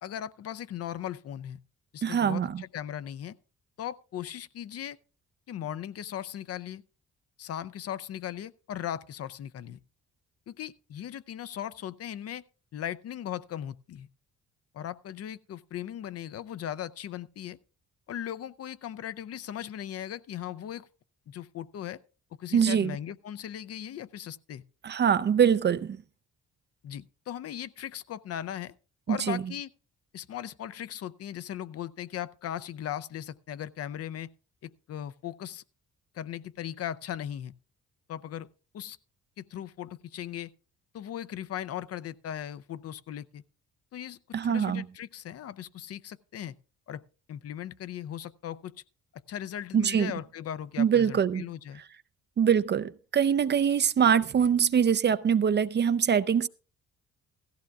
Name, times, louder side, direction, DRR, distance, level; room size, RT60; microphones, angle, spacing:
voice 1, 0.0-1.6 1.9-3.4 3.8-5.0 5.5-6.8 7.4-9.8 10.5-12.4 12.7-14.1 14.7-17.6 18.1-20.9 21.3-22.0 22.4-24.6 26.8-28.7 29.1-29.7 30.1-34.3 34.6-35.6 36.1-37.5 38.1-38.5 38.7-39.0 39.4-40.5 40.9-43.4 43.9-46.6 46.9-47.0 47.3-48.7 49.1-51.8, left 10 dB, 55° left, 0.5 m, -38 dB
voice 2, 2.0-2.6 22.5-23.0 24.8-26.0 29.1-29.5 44.3-44.9 49.7-50.1 50.8-51.5 52.4-56.5, right 8 dB, 35° right, 0.5 m, -24 dB
16.0 x 14.5 x 2.4 m
cardioid pair, 90°, 30 cm